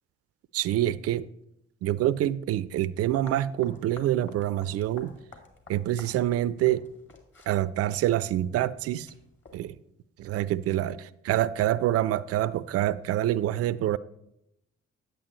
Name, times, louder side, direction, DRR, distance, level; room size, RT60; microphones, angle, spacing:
voice 1, 0.5-1.2 1.8-5.1 5.7-6.8 7.5-9.1 9.5-9.8 10.2-14.0, right 13 dB, 45° right, 0.4 m, -26 dB
sound 1, 3.0-9.6, left 3 dB, 35° left, 1.9 m, -52 dB
9.0 x 8.4 x 3.0 m
figure-of-eight pair, 45°, 35 cm